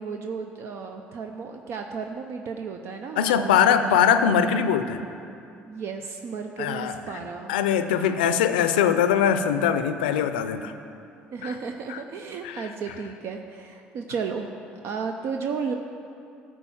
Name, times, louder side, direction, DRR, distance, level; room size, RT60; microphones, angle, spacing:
voice 1, 0.0-4.0 5.7-7.5 7.9-8.2 11.3-14.6 14.8-15.7, right 5 dB, 60° right, 4 dB, 0.6 m, -34 dB
voice 2, 3.2-5.0 6.6-10.7 11.4-11.5 11.9-12.0 12.4-12.7, left 8 dB, 90° left, 10 dB, 0.5 m, -22 dB
12.5 x 4.7 x 7.3 m, 2.6 s
hypercardioid pair, 65°, 5 cm